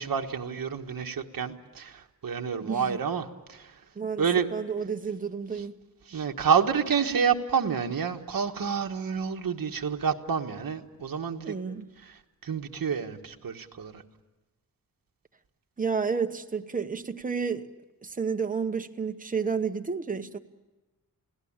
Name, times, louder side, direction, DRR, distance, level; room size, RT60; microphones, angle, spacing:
voice 1, 0.0-3.8 4.2-4.5 5.5-5.6 6.1-11.5 12.0-14.0, right 6 dB, 65° right, 4 dB, 1.4 m, -29 dB
voice 2, 2.6-3.0 4.0-4.2 4.5-5.7 11.4-11.9 15.8-17.7 18.0-20.4, right 5 dB, 20° right, 6 dB, 1.0 m, -31 dB
29.5 x 17.5 x 8.8 m, 1.1 s
wide cardioid pair, 170°, 37 cm